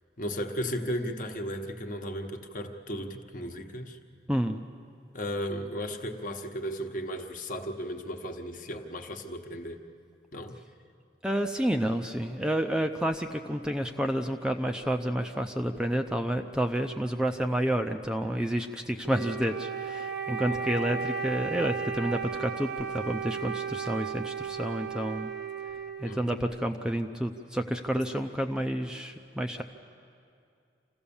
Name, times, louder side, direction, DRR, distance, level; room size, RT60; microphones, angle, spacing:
voice 1, 0.2-4.0 5.1-9.8 10.3-10.6 20.5-20.9 26.0-26.5 27.9-28.0, equal, 45° left, 4 dB, 1.2 m, -35 dB
voice 2, 4.3-4.6 11.2-25.3 26.0-29.6, right 1 dB, 5° right, 5 dB, 0.5 m, -30 dB
Wind instrument woodwind instrument, 19.1-26.6, right 6 dB, 65° right, 1.0 m, -35 dB
27.0 x 16.0 x 7.1 m, 2.4 s
head